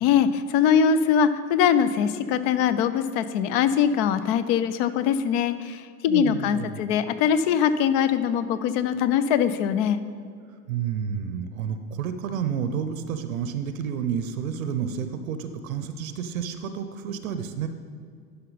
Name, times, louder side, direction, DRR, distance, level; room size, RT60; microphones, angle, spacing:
voice 1, 0.0-10.0, left 8 dB, 45° left, 13 dB, 0.6 m, -22 dB
voice 2, 6.1-6.8 10.7-17.7, right 7 dB, 65° right, 10 dB, 0.7 m, -30 dB
11.5 x 5.6 x 4.1 m, 2.2 s
figure-of-eight pair, 85°, 44 cm